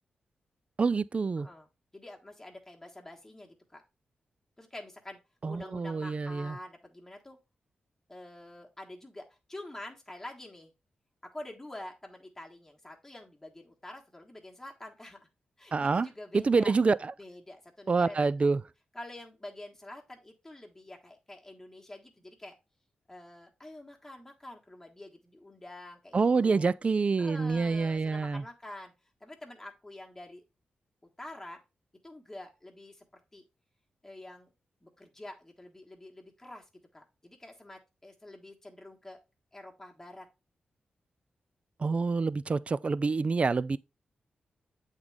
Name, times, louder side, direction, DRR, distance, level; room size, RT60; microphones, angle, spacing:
voice 1, 0.8-1.5 5.4-6.6 15.7-16.1 16.3-17.0 17.9-18.6 26.1-28.4 41.8-43.8, right 4 dB, 40° right, 0.3 m, -27 dB
voice 2, 1.4-3.8 4.6-7.4 8.1-10.7 11.3-15.3 15.6-16.7 17.2-18.3 18.9-22.6 23.1-26.7 27.2-28.9 29.2-30.4 31.2-31.6 32.0-33.4 34.0-34.5 34.8-36.6 36.9-39.2 39.5-40.3, left 1 dB, 15° left, 1.4 m, -47 dB
7.9 x 3.7 x 3.4 m
cardioid pair, 70°, 3 cm